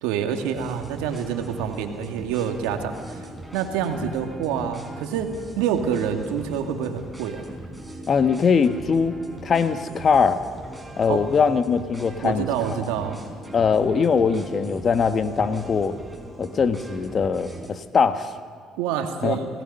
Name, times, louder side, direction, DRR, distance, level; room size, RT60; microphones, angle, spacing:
voice 1, 0.0-3.0 3.5-7.5 11.1-11.3 12.2-13.2 18.8-19.5, right 8 dB, 80° right, 5 dB, 1.9 m, -27 dB
sound 1, 0.5-17.7, right 1 dB, 5° right, 4.9 m, -40 dB
voice 2, 8.1-9.2 9.4-10.4 11.0-12.5 13.5-16.0 16.4-18.3 19.2-19.4, left 6 dB, 45° left, 10 dB, 1.4 m, -21 dB
29.0 x 17.5 x 5.5 m, 2.1 s
supercardioid pair, 65°, 0 cm